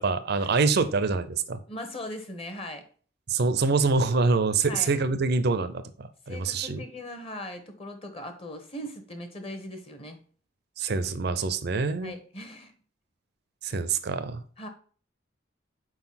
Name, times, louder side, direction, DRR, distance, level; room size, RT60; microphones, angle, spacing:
voice 1, 0.0-1.6 3.3-6.8 10.8-12.1 13.6-14.4, right 4 dB, 55° right, 0.5 m, -25 dB
voice 2, 1.7-2.8 4.7-5.0 6.3-10.2 12.0-12.7 14.6-14.7, left 1 dB, 30° left, 1.0 m, -39 dB
4.6 x 4.0 x 5.7 m
head